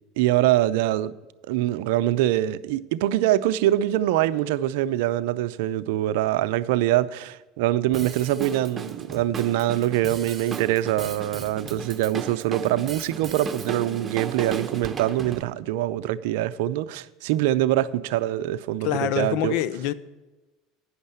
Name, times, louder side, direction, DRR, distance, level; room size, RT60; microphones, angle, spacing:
voice 1, 0.2-1.1 1.5-19.6, right 14 dB, 75° right, 0.5 m, -24 dB
Drum kit, 7.9-15.4, right 5 dB, 25° right, 0.9 m, -36 dB
voice 2, 18.8-19.9, left 12 dB, 70° left, 0.6 m, -25 dB
9.5 x 6.4 x 8.2 m
supercardioid pair, 100°, 0 cm